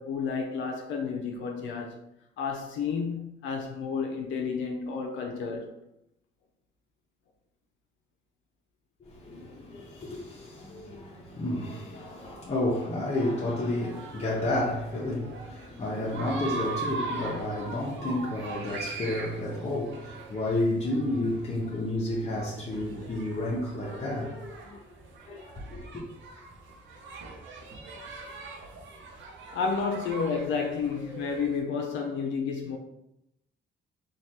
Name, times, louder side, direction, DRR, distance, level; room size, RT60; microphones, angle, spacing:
voice 1, 0.0-2.0 2.4-5.7 9.8-9.9 29.5-32.8, left 5 dB, 75° left, 0.4 m, -31 dB
voice 2, 9.0-24.8 25.2-26.0, left 1 dB, 35° left, 0.6 m, -31 dB
sound 1, 13.9-31.6, right 3 dB, 75° right, 0.6 m, -41 dB
3.2 x 2.3 x 2.7 m
cardioid pair, 90°, 20 cm